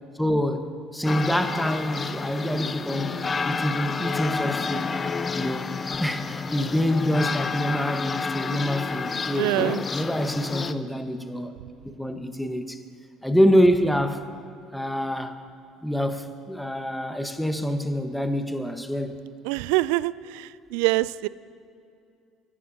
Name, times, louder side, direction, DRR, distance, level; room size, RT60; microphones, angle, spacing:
voice 1, 0.1-3.2 3.5-4.9 5.3-5.7 6.0-9.5 9.9-11.5 12.0-12.8 13.2-14.3 14.7-15.4 15.8-19.2, equal, ahead, 1.3 m, -26 dB
sound 1, 1.0-10.7, left 5 dB, 30° left, 0.7 m, -30 dB
voice 2, 9.4-9.8 19.4-21.3, right 19 dB, 75° right, 0.3 m, -25 dB
29.5 x 15.0 x 2.8 m
hypercardioid pair, 60°, 0 cm